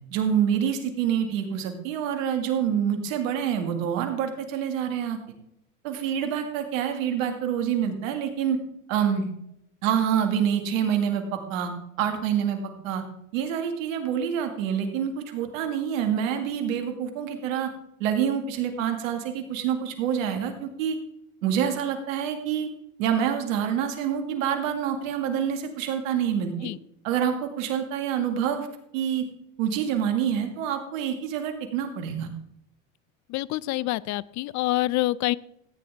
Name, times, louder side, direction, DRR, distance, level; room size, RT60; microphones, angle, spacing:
voice 1, 0.1-5.2 5.8-8.6 8.9-9.3 9.8-11.7 12.0-13.0 13.3-17.7 18.0-21.0 21.4-22.7 23.0-26.5 27.0-28.7 28.9-29.3 29.6-32.3, right 8 dB, 80° right, 6 dB, 2.0 m, -26 dB
voice 2, 33.3-35.3, left 17 dB, 45° left, 22 dB, 0.5 m, -26 dB
14.5 x 9.3 x 3.5 m, 0.79 s
supercardioid pair, 90°, 39 cm